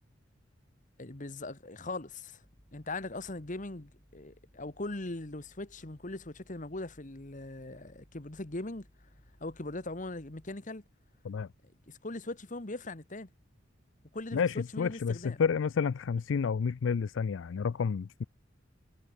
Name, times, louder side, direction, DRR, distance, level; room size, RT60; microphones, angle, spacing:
voice 1, 1.0-2.4 2.7-8.9 9.4-10.8 11.9-13.3 14.1-15.4, left 2 dB, 40° left, 1.5 m, -40 dB
sound 1, 2.4-10.6, equal, 10° left, 5.1 m, -63 dB
voice 2, 14.3-18.2, left 6 dB, 70° left, 0.4 m, -30 dB
head